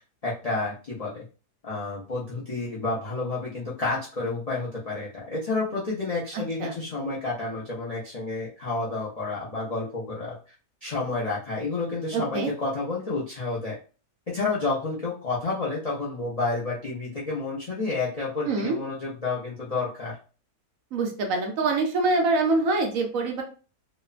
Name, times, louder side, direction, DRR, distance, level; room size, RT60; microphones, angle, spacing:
voice 1, 0.2-1.2 1.6-10.4 10.8-13.8 14.3-20.1, left 3 dB, 65° left, -7 dB, 0.3 m, -30 dB
voice 2, 6.3-6.7 12.1-12.5 18.5-18.8 20.9-23.4, right 3 dB, 70° right, 2 dB, 1.0 m, -25 dB
2.9 x 2.1 x 2.3 m, 0.35 s
omnidirectional pair, 1.6 m